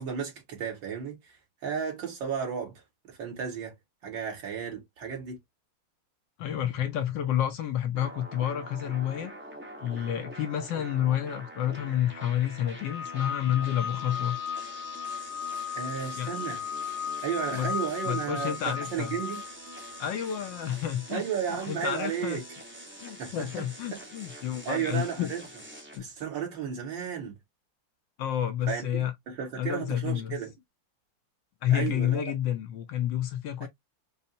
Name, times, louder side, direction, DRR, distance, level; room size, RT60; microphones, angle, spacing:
voice 1, 0.0-2.8 3.1-3.7 4.0-5.4 15.8-16.6 17.2-19.4 21.1-22.4 23.2-23.5 23.9-24.0 24.7-25.4 26.0-27.4 28.7-30.5 31.7-32.3 33.6-33.7, right 7 dB, 65° right, 2.2 m, -33 dB
voice 2, 6.4-9.3 9.8-14.4 16.1-16.3 17.5-17.7 18.1-19.1 20.0-21.2 21.7-22.4 23.0-25.3 25.9-26.1 28.2-29.1 29.6-30.4 31.6-33.7, left 11 dB, 75° left, 1.2 m, -29 dB
sound 1, 7.9-26.0, equal, 15° right, 0.4 m, -45 dB
sound 2, 12.8-20.6, left 7 dB, 45° right, 1.4 m, -36 dB
5.4 x 2.0 x 2.6 m
omnidirectional pair, 2.2 m